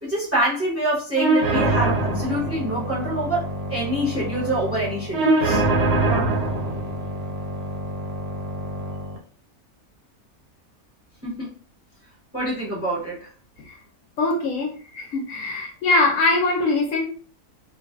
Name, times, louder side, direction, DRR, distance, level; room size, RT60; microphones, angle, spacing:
voice 1, 0.0-5.6 11.2-11.5 12.3-13.3, right 1 dB, 15° right, -5 dB, 0.6 m, -26 dB
sound 1, 1.2-9.2, right 2 dB, 85° right, 1.2 m, -24 dB
voice 2, 14.2-17.0, left 2 dB, 70° left, 0 dB, 0.8 m, -22 dB
2.4 x 2.4 x 2.3 m, 0.42 s
omnidirectional pair, 1.6 m